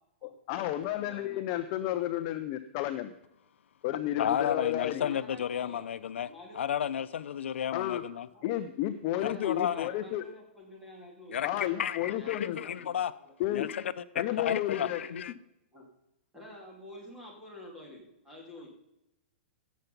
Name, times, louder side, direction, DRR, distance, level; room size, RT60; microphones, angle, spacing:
voice 1, 0.2-3.1 3.8-5.1 7.7-8.0 8.4-10.2 11.4-12.6 13.4-13.7 14.2-15.0, left 13 dB, 25° left, 10 dB, 0.5 m, -32 dB
voice 2, 0.9-1.5 4.6-5.9 6.2-6.9 8.3-8.4 9.2-11.7 12.1-13.3 14.7-15.1 15.7-15.9 16.3-18.7, left 1 dB, 5° right, -3 dB, 2.7 m, -49 dB
voice 3, 4.2-6.3 6.6-8.3 9.2-9.9 11.3-13.1 13.5-15.3, left 9 dB, 80° left, 15 dB, 0.5 m, -32 dB
16.5 x 6.9 x 5.3 m, 0.87 s
hypercardioid pair, 175°, 6 cm